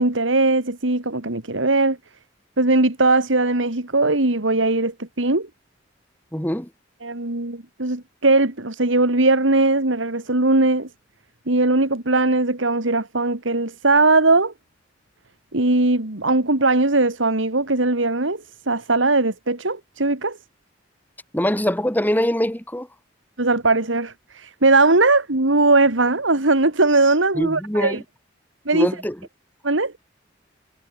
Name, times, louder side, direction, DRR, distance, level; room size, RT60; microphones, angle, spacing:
voice 1, 0.0-2.0 2.6-5.5 7.0-10.9 11.5-14.5 15.5-20.4 23.4-28.0 28.7-28.9 29.6-29.9, right 2 dB, 85° right, 2.5 m, -19 dB
voice 2, 6.3-6.7 21.3-22.9 27.4-28.0 28.7-29.2, equal, 10° left, 2.6 m, -23 dB
head